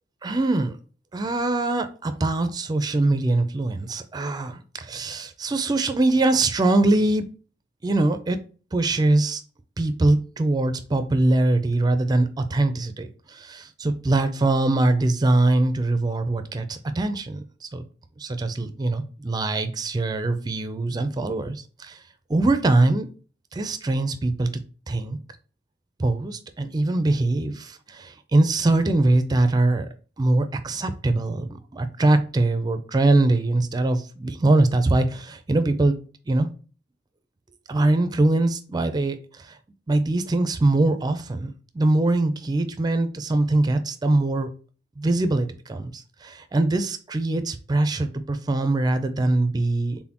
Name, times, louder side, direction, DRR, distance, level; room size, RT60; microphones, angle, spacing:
voice 1, 0.2-0.8 1.1-7.3 7.8-8.4 8.7-9.4 9.8-17.8 18.2-22.0 22.3-23.1 23.5-24.5 24.9-25.2 26.0-29.9 30.2-35.9 36.3-36.5 37.7-39.6 39.9-44.5 45.0-50.0, right 2 dB, 20° right, 9 dB, 0.4 m, -22 dB
4.2 x 3.6 x 2.9 m, 0.38 s
head